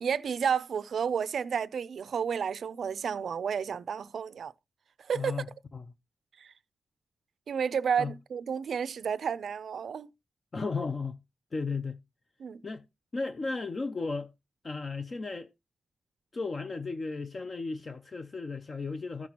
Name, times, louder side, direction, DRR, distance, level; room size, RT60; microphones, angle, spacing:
voice 1, 0.0-4.5 5.1-5.4 6.4-6.5 7.5-10.1 12.4-12.6, right 7 dB, 70° right, 0.4 m, -31 dB
voice 2, 5.1-5.5 5.7-5.8 8.0-8.1 10.5-11.2 11.5-12.0 12.6-12.8 13.1-14.3 14.6-15.5 16.3-19.3, left 4 dB, 35° left, 0.5 m, -34 dB
15.0 x 6.0 x 2.9 m
wide cardioid pair, 165°, 0 cm